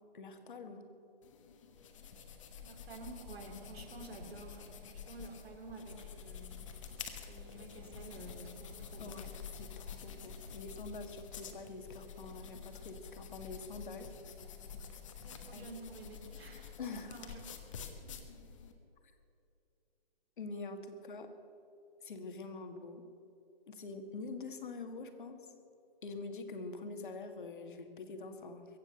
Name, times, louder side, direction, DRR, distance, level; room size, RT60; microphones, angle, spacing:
voice 1, 0.1-0.9 9.0-9.3 9.6-14.1 15.5-15.7 16.8-17.2 20.4-21.3 22.0-23.0 23.7-25.4 26.0-28.7, left 3 dB, 55° left, 7 dB, 1.8 m, -45 dB
sound 1, 1.2-18.7, left 6 dB, 30° left, 1.2 m, -49 dB
voice 2, 2.6-6.6 7.2-9.2 11.5-11.6 15.2-17.6, right 2 dB, 85° right, 2 dB, 3.5 m, -50 dB
23.0 x 8.0 x 6.8 m, 2.7 s
hypercardioid pair, 165°, 30 cm